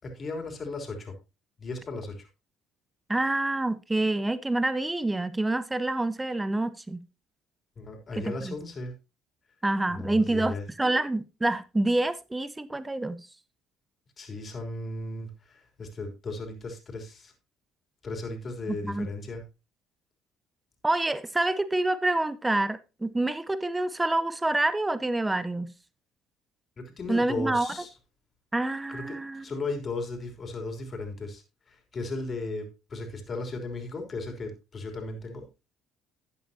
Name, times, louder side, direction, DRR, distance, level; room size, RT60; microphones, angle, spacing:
voice 1, 0.0-1.2 1.6-2.3 7.8-8.9 9.9-10.7 14.2-17.3 18.0-19.4 26.8-27.9 28.9-35.5, left 3 dB, 40° left, 3.4 m, -36 dB
voice 2, 3.1-7.0 8.1-8.5 9.6-13.2 18.8-19.1 20.8-25.7 27.1-27.7 28.5-29.4, right 2 dB, 15° right, 0.8 m, -27 dB
12.0 x 8.7 x 2.8 m
supercardioid pair, 70°, 0 cm